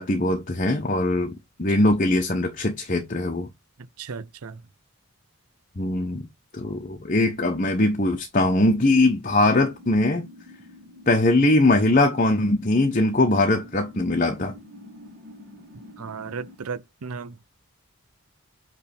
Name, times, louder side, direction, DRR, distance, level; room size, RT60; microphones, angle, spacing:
voice 1, 0.0-3.5 5.8-6.3 6.5-10.3 11.1-14.5, left 2 dB, 35° left, 1.0 m, -21 dB
voice 2, 4.0-4.6 16.0-17.3, right 5 dB, 85° right, 0.6 m, -35 dB
sound 1, 9.2-16.6, left 1 dB, 40° right, 2.9 m, -47 dB
8.4 x 3.5 x 4.4 m
head